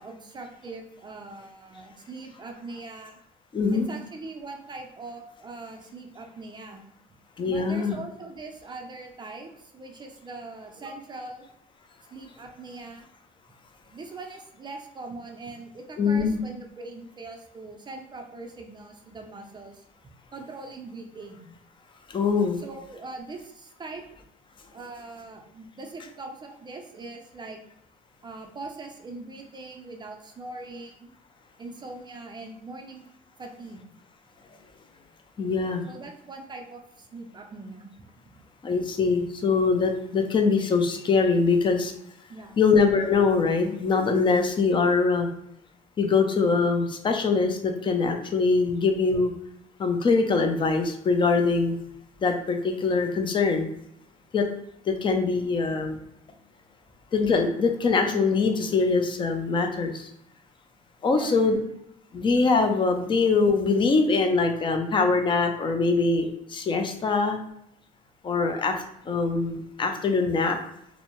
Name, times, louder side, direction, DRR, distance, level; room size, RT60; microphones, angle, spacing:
voice 1, 0.0-3.2 3.7-6.8 7.5-11.5 12.1-13.1 13.9-19.8 20.3-21.5 22.6-24.0 24.7-27.6 28.2-31.1 31.6-33.0 33.4-33.9 35.9-37.9 42.3-42.6 61.1-61.6, right 3 dB, 25° right, 3 dB, 0.5 m, -41 dB
voice 2, 3.5-3.9 7.4-8.0 16.0-16.4 22.1-22.6 35.4-35.8 38.6-41.9 42.6-45.3 46.0-49.3 49.8-51.7 52.2-53.7 54.3-54.5 54.9-56.0 57.1-60.1 61.0-61.6 62.1-67.4 68.2-68.8 69.1-70.6, left 4 dB, 30° left, 5 dB, 0.4 m, -23 dB
2.6 x 2.0 x 2.9 m, 0.76 s
cardioid pair, 110°, 17 cm